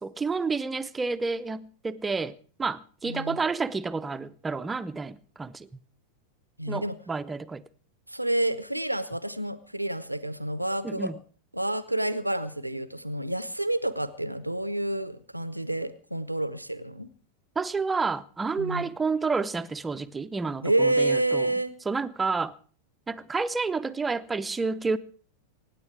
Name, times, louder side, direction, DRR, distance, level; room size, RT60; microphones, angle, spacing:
voice 1, 0.0-5.7 6.7-7.6 10.8-11.2 17.6-21.5 21.8-22.5 23.1-25.0, right 4 dB, 15° right, 0.7 m, -30 dB
voice 2, 3.0-3.4 6.6-7.0 8.1-11.1 11.5-17.1 18.6-18.9 20.6-21.7, right 1 dB, 90° right, 0.9 m, -28 dB
24.5 x 9.7 x 4.8 m
figure-of-eight pair, 90°, 0 cm